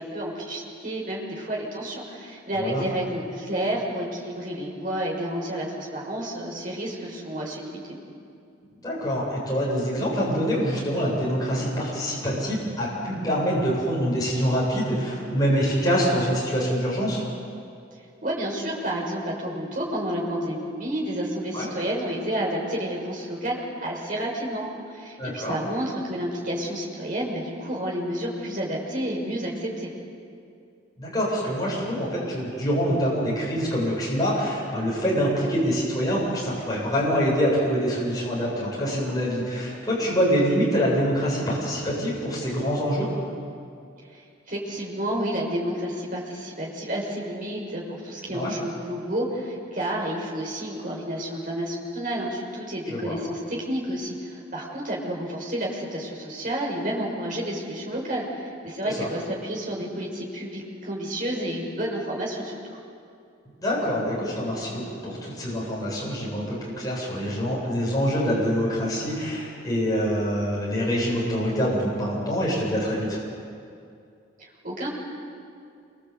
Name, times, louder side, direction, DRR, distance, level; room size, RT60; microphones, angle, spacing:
voice 1, 0.0-7.8 18.2-29.9 44.1-44.2 44.5-62.6 74.4-74.9, right 1 dB, 45° right, -2 dB, 6.4 m, -30 dB
voice 2, 8.8-17.2 21.5-21.7 25.2-25.6 31.0-43.1 48.3-48.5 52.9-53.1 58.8-59.1 63.6-73.2, equal, 20° left, -5 dB, 7.9 m, -25 dB
28.0 x 24.5 x 8.4 m, 2.4 s
head